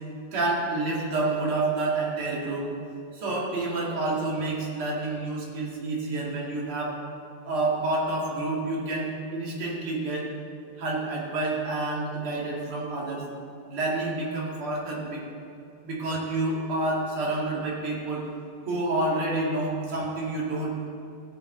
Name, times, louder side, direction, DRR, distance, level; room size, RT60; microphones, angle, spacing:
voice 1, 0.3-2.7 3.1-7.0 7.4-10.3 10.8-13.3 13.7-15.2 15.8-18.2 18.7-21.0, right 2 dB, 40° right, -4 dB, 2.8 m, -28 dB
16.5 x 10.5 x 3.9 m, 2.6 s
omnidirectional pair, 3.9 m